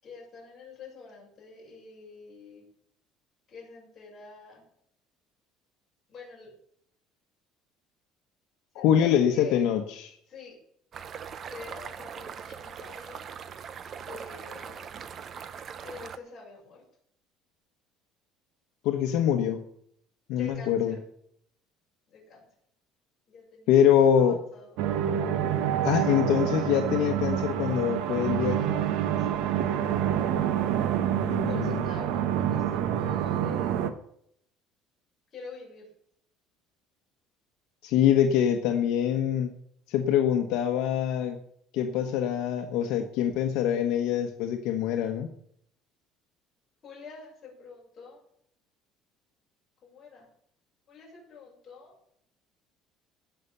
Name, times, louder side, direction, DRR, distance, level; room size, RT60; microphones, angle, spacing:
voice 1, 0.0-2.7 3.5-4.6 6.1-6.5 8.7-9.6 10.2-10.6 11.5-13.2 14.0-14.9 15.8-16.8 20.3-21.0 22.1-22.4 23.3-24.8 29.2-30.0 31.3-33.9 35.3-35.9 46.8-48.2 49.8-50.3 50.9-51.9, left 4 dB, 25° left, -4 dB, 6.6 m, -47 dB
voice 2, 8.7-10.1 18.8-19.6 20.3-20.9 23.7-24.4 25.8-28.8 31.1-31.8 37.8-39.5 39.9-41.4 41.7-45.3, left 9 dB, 70° left, 4 dB, 1.2 m, -24 dB
sound 1, 10.9-16.2, right 7 dB, 35° right, 0.6 m, -41 dB
sound 2, 24.8-33.9, right 10 dB, 75° right, 1.1 m, -27 dB
17.0 x 5.9 x 6.8 m, 0.69 s
cardioid pair, 165°, 0 cm